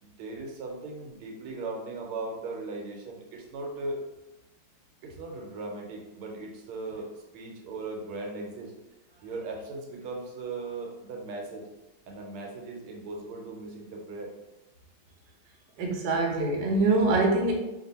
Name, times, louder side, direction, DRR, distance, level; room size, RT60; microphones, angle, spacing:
voice 1, 0.0-4.0 5.0-8.7 9.2-11.6 12.1-14.3, right 3 dB, 90° right, 0 dB, 1.6 m, -38 dB
voice 2, 15.8-17.5, right 2 dB, 65° right, -1 dB, 1.3 m, -24 dB
3.3 x 2.6 x 4.0 m, 1.0 s
omnidirectional pair, 2.3 m